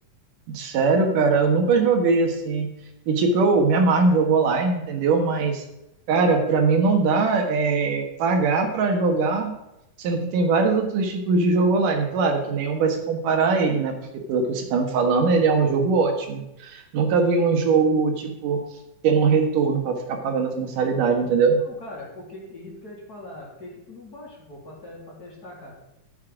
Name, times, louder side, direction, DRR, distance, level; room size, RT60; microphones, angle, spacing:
voice 1, 0.5-2.7 3.1-5.6 6.1-9.5 10.0-13.9 14.3-18.6 19.0-21.6, right 4 dB, 85° right, 4 dB, 3.2 m, -21 dB
voice 2, 21.6-25.7, left 1 dB, 30° left, -4 dB, 3.5 m, -41 dB
13.0 x 8.6 x 5.0 m, 0.89 s
omnidirectional pair, 3.6 m